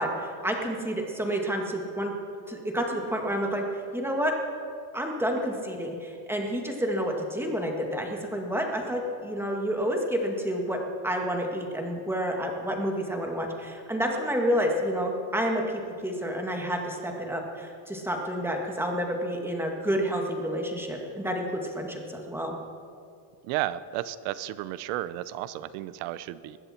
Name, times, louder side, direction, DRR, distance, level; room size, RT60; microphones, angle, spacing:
voice 1, 0.0-2.1 2.5-3.6 3.9-4.3 4.9-22.5, equal, 5° right, 1 dB, 1.9 m, -29 dB
voice 2, 23.4-26.6, right 14 dB, 80° right, 15 dB, 0.9 m, -33 dB
20.5 x 15.0 x 4.4 m, 2.4 s
cardioid pair, 145°, 49 cm